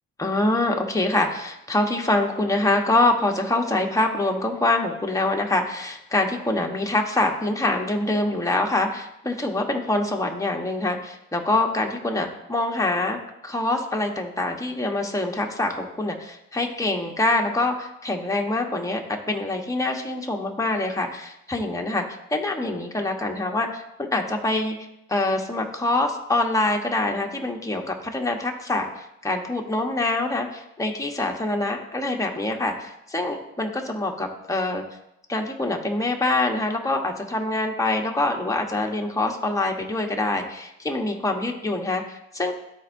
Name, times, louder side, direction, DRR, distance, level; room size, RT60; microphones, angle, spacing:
voice 1, 0.2-13.2 13.4-22.1 22.3-24.7 25.1-34.8 35.3-42.5, left 2 dB, 10° left, 2 dB, 1.1 m, -25 dB
13.0 x 4.5 x 2.7 m, 0.84 s
cardioid pair, 90°, 30 cm